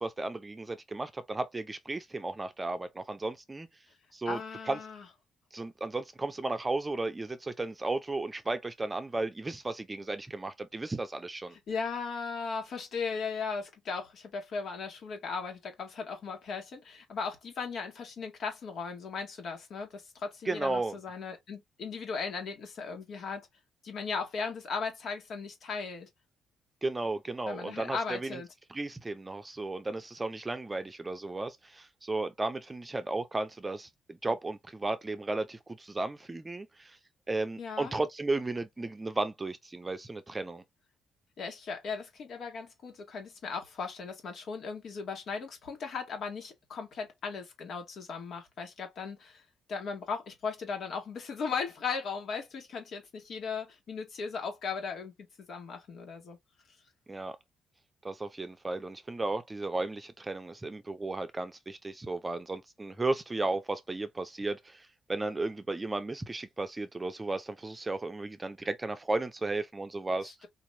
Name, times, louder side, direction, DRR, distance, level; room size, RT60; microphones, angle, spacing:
voice 1, 0.0-3.7 4.1-4.8 5.5-11.6 20.5-21.0 26.8-28.4 28.7-37.0 37.3-40.6 57.1-57.4 58.0-70.3, right 2 dB, 20° right, 0.7 m, -34 dB
voice 2, 4.3-5.1 11.7-23.5 23.8-26.1 27.5-28.5 37.6-37.9 41.4-49.4 49.7-56.4 70.2-70.5, left 5 dB, 65° left, 2.0 m, -37 dB
4.0 x 3.0 x 2.6 m
cardioid pair, 90°, 0 cm